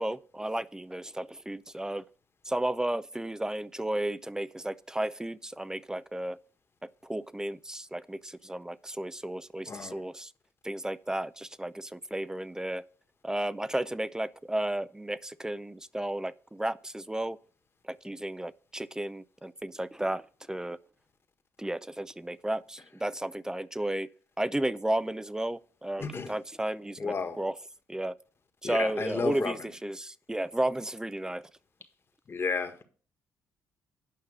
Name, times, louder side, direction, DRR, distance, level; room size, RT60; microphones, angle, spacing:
voice 1, 0.0-2.0 2.4-6.4 6.8-10.3 10.6-12.8 13.2-17.4 17.9-20.2 20.5-20.8 21.6-24.1 24.4-27.6 27.9-28.2 28.6-31.4, right 1 dB, 10° right, 0.5 m, -33 dB
voice 2, 9.7-10.0 26.0-26.3 27.0-27.4 28.6-29.5 32.3-32.8, left 4 dB, 40° left, 1.6 m, -32 dB
9.2 x 5.6 x 6.6 m
supercardioid pair, 60°, 7 cm